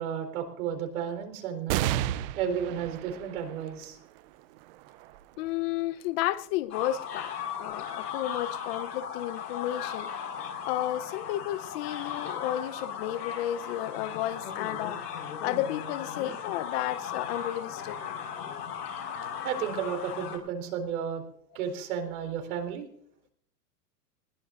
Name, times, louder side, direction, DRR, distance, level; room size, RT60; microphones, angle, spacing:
voice 1, 0.0-1.8 2.4-4.0 19.4-21.2 21.5-22.9, right 8 dB, 60° right, 4.3 m, -33 dB
sound 1, 1.7-8.6 9.2-9.3 10.4-11.0, right 13 dB, 35° right, 0.7 m, -36 dB
voice 2, 5.4-10.1 10.6-15.0 15.4-18.0, left 13 dB, 40° left, 0.9 m, -32 dB
sound 2, 6.7-20.4, left 8 dB, 75° left, 5.5 m, -37 dB
20.5 x 19.0 x 2.6 m
hypercardioid pair, 145°, 48 cm